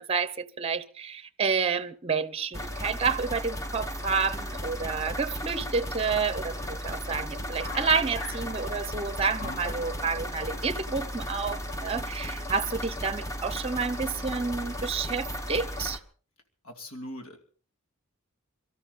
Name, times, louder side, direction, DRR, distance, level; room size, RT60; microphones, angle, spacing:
voice 1, 0.0-16.0, right 5 dB, 30° right, 0.7 m, -29 dB
sound 1, 2.5-16.0, equal, 15° left, 1.1 m, -35 dB
sound 2, 6.5-11.8, left 2 dB, 50° left, 2.4 m, -44 dB
voice 2, 16.6-17.4, equal, 90° left, 2.7 m, -41 dB
24.0 x 13.0 x 4.1 m
head